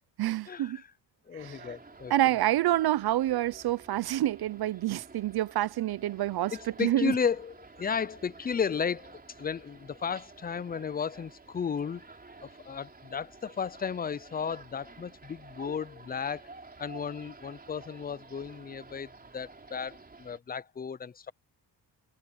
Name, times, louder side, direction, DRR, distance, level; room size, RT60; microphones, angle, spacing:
voice 1, 0.2-0.8 1.3-1.7 2.1-7.1, right 14 dB, 60° right, 0.7 m, -28 dB
voice 2, 1.3-2.1 6.5-12.0 12.4-16.4 16.8-21.3, left 6 dB, 20° left, 0.4 m, -34 dB
sound 1, 1.4-20.4, right 3 dB, 20° right, 4.1 m, -51 dB
cardioid pair, 135°, 43 cm